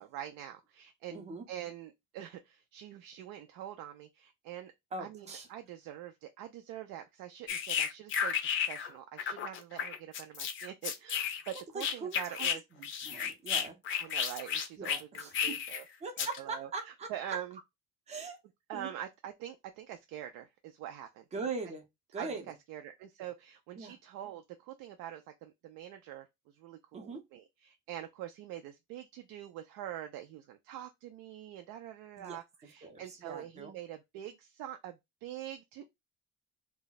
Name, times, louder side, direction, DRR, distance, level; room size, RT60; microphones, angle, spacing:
voice 1, 0.0-4.7 5.0-12.6 14.0-15.8 16.2-17.6 18.7-21.2 22.2-35.8, right 11 dB, 85° right, 0.5 m, -45 dB
voice 2, 1.1-1.4 4.9-5.5 11.7-12.5 12.8-13.8 14.8-15.6 16.0-17.1 18.1-18.4 18.7-18.9 21.3-21.8 22.1-22.4 23.7-24.0 26.9-27.2 32.2-32.4 32.8-33.7, right 4 dB, 20° right, 0.5 m, -41 dB
sound 1, 7.5-8.9 9.2-12.6 12.8-15.8 16.2-16.4, left 8 dB, 40° left, 0.4 m, -33 dB
2.3 x 2.0 x 3.8 m
cardioid pair, 170°, 32 cm